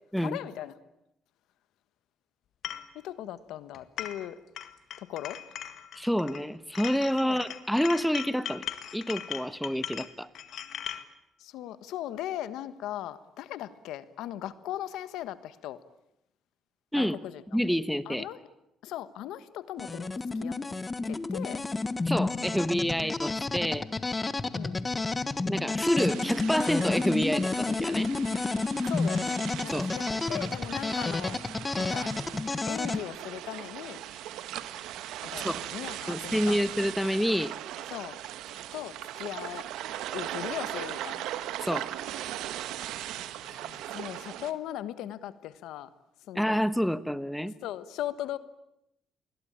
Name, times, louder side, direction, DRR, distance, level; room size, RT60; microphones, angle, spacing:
voice 1, 0.2-0.7 2.9-4.4 5.0-5.4 7.2-7.4 11.4-15.8 16.9-17.4 18.1-18.4 18.8-20.1 20.4-20.5 21.0-21.6 24.5-24.9 28.8-31.4 31.8-32.1 32.7-34.0 35.2-36.6 37.9-38.2 38.7-39.7 40.1-41.3 43.4-45.9 46.3-46.6 47.6-48.4, left 12 dB, 85° left, 14 dB, 1.4 m, -38 dB
sound 1, 2.6-2.9 3.7-4.3 4.6-6.4 6.7-11.0, left 10 dB, 70° left, 1.8 m, -39 dB
voice 2, 5.9-8.6 8.9-10.3 16.9-17.2 17.5-18.3 22.1-23.9 25.4-28.1 29.7-29.9 35.4-35.6 36.1-37.5 41.6-41.9 46.3-47.5, equal, ahead, 14 dB, 1.2 m, -28 dB
sound 2, 19.8-33.0, left 3 dB, 20° left, 1.3 m, -30 dB
sound 3, 26.0-44.5, right 12 dB, 90° right, 1.4 m, -39 dB
28.5 x 21.5 x 8.9 m, 0.85 s
cardioid pair, 100°, 0 cm